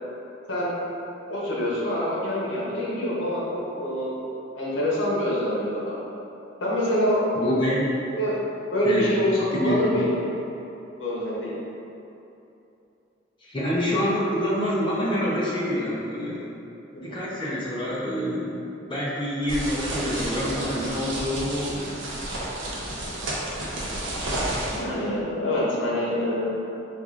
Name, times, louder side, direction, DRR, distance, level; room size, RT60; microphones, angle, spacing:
voice 1, 1.3-4.2 4.5-6.0 6.6-7.6 8.1-8.4 8.7-10.2 11.0-11.6 24.7-26.5, left 1 dB, 75° left, -6 dB, 0.9 m, -25 dB
voice 2, 7.3-7.9 8.8-9.1 9.5-9.8 13.4-16.4 17.0-21.9, equal, 25° left, -6 dB, 0.6 m, -27 dB
sound 1, 19.5-24.8, right 1 dB, 80° right, 0.7 m, -31 dB
4.6 x 2.4 x 2.4 m, 2.9 s
head